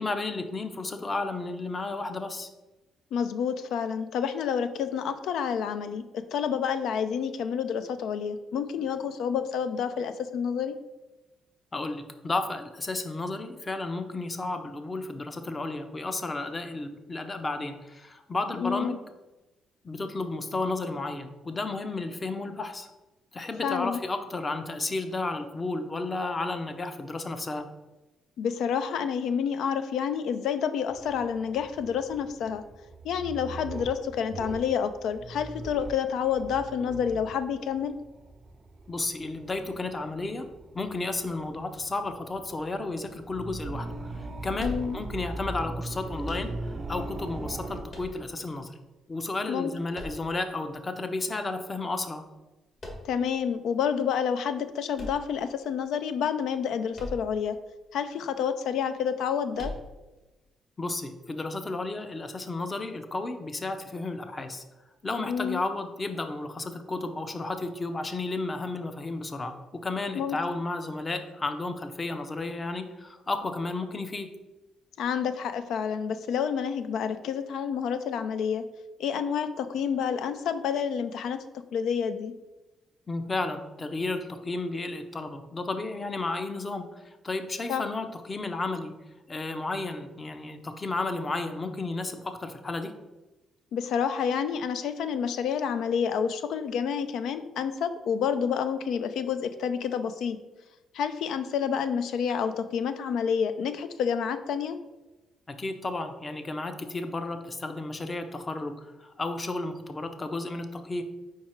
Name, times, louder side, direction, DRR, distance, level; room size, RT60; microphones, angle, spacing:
voice 1, 0.0-2.5 11.7-19.0 19.8-22.9 23.3-27.7 38.9-40.4 40.7-48.7 49.1-52.2 60.8-64.6 65.0-74.3 83.1-88.9 89.3-92.9 105.5-111.0, left 2 dB, 30° left, 8 dB, 0.6 m, -33 dB
voice 2, 3.1-10.8 18.6-19.0 23.6-24.0 28.4-32.6 33.0-38.0 44.6-45.0 49.5-49.7 53.0-57.6 57.9-59.7 65.3-65.6 70.2-70.4 75.0-78.7 79.0-82.4 87.7-87.8 93.7-100.4 100.9-104.8, left 7 dB, 80° left, 11 dB, 0.4 m, -29 dB
sound 1, 30.9-47.8, right 2 dB, 40° right, 0.5 m, -40 dB
sound 2, 44.6-45.3 46.2-46.9 47.9-48.6 49.9-50.7 52.8-53.4 54.9-55.8 56.9-57.5 57.8-57.9 59.5-60.2, left 1 dB, 45° left, 1.7 m, -40 dB
4.7 x 4.6 x 4.4 m, 1.1 s
cardioid pair, 90°, 0 cm